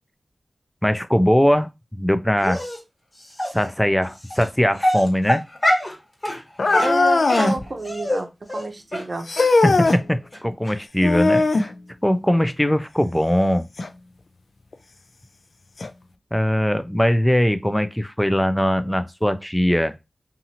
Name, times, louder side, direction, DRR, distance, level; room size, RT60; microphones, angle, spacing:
voice 1, 0.8-2.6 3.5-5.4 9.6-11.7 12.0-13.7 16.3-19.9, equal, 5° left, 0.4 m, -20 dB
Dog, 2.4-2.8 3.4-3.5 4.3-4.4 4.8-5.9 6.2-6.4 6.7-8.2 8.5-8.6 8.9-9.0 9.4-9.5 9.8-9.9 10.3-10.4 10.7-10.8, left 1 dB, 30° left, 1.4 m, -23 dB
sound 1, 6.6-7.6 9.3-10.0 11.0-11.7 13.8-13.9 14.7-14.8 15.8-15.9, left 3 dB, 75° left, 0.4 m, -19 dB
voice 2, 6.7-9.3, right 2 dB, 60° right, 0.6 m, -29 dB
2.7 x 2.6 x 2.7 m
cardioid pair, 45°, 0 cm